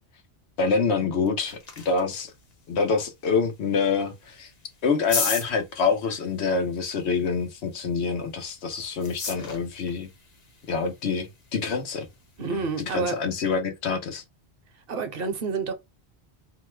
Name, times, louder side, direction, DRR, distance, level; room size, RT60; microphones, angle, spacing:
voice 1, 0.6-1.6 1.8-2.3 2.7-4.5 4.8-10.1 10.7-12.1 12.5-14.2, left 5 dB, 90° left, 1.1 m, -26 dB
sound 1, 1.0-13.6, left 4 dB, 45° left, 0.7 m, -39 dB
voice 2, 12.4-13.2 14.9-15.7, right 4 dB, 65° right, 0.9 m, -29 dB
2.9 x 2.2 x 3.1 m
omnidirectional pair, 1.1 m